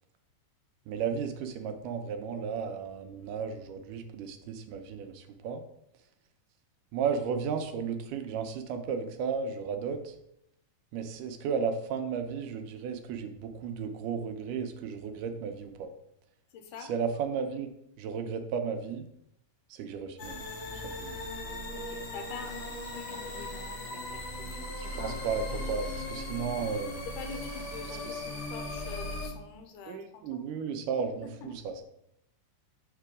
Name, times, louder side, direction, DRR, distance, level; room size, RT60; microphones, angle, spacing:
voice 1, 0.9-5.6 6.9-10.2 10.9-15.9 16.8-17.7 18.0-19.1 19.7-20.5 20.7-21.2 25.0-26.9 28.1-28.2 29.9-31.8, right 6 dB, 85° right, 7 dB, 2.1 m, -34 dB
voice 2, 16.5-16.9 21.7-25.8 27.1-30.4 31.2-31.6, left 5 dB, 80° left, 6 dB, 2.3 m, -46 dB
sound 1, 20.2-29.3, left 1 dB, 55° left, 2.3 m, -38 dB
sound 2, 22.4-23.8 24.8-26.1 27.2-28.5, right 4 dB, 60° right, 1.8 m, -56 dB
6.7 x 3.7 x 4.8 m, 0.77 s
omnidirectional pair, 3.8 m